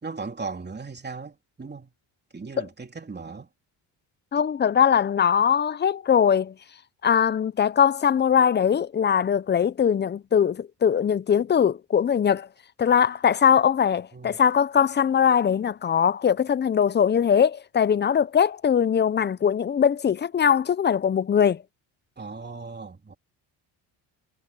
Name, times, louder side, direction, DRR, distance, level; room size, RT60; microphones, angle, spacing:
voice 1, 0.0-1.9 2.3-3.5 14.1-14.4 22.2-23.1, right 4 dB, 20° right, 3.2 m, -37 dB
voice 2, 4.3-6.5 7.0-12.5 12.8-21.6, left 8 dB, 25° left, 0.5 m, -21 dB
cardioid pair, 110°, 45 cm